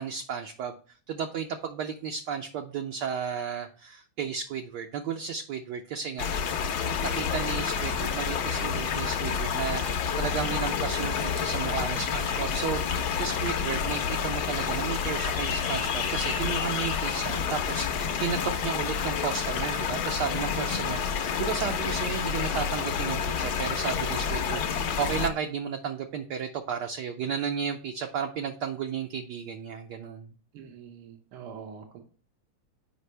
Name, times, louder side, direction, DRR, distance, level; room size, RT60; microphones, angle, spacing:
voice 1, 0.0-6.3 7.0-30.3, right 7 dB, 70° right, 4 dB, 1.0 m, -33 dB
sound 1, 6.2-25.3, left 7 dB, 65° left, 1.1 m, -29 dB
voice 2, 30.5-32.0, right 7 dB, 85° right, 4 dB, 1.8 m, -44 dB
8.0 x 5.1 x 3.3 m, 0.41 s
omnidirectional pair, 2.3 m